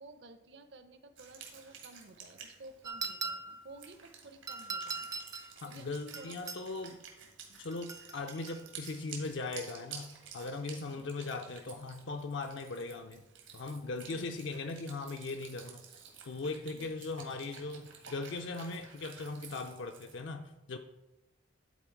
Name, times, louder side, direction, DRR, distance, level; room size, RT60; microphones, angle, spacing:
voice 1, 0.0-6.5 7.5-7.6 14.1-14.3 16.7-16.9, right 2 dB, 60° right, 9 dB, 0.7 m, -54 dB
Wind instrument woodwind instrument, 1.2-20.1, right 6 dB, 80° right, 1.7 m, -52 dB
sound 1, 2.8-3.7 4.5-5.5 6.1-6.7 7.7-8.6, right 4 dB, 20° right, 0.4 m, -40 dB
voice 2, 5.6-7.0 7.6-13.2 13.5-15.9 16.2-20.8, left 3 dB, 70° left, 5 dB, 0.5 m, -39 dB
10.5 x 4.2 x 4.6 m, 0.96 s
head